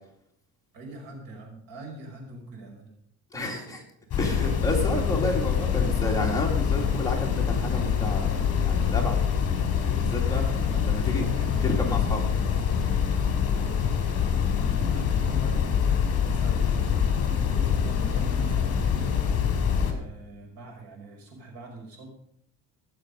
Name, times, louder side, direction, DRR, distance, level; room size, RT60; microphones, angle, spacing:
voice 1, 0.7-2.9 10.3-12.2 13.6-13.8 14.2-14.4 14.7-19.2 19.5-22.1, right 2 dB, 70° right, 1 dB, 5.8 m, -42 dB
voice 2, 3.3-3.8 4.2-8.3 8.6-9.6 9.9-10.4 10.8-11.2 11.6-12.2, left 1 dB, 10° left, -1 dB, 2.3 m, -31 dB
sound 1, 4.1-19.9, left 7 dB, 40° left, 3.1 m, -25 dB
19.0 x 6.8 x 5.2 m, 0.72 s
cardioid pair, 150°, 36 cm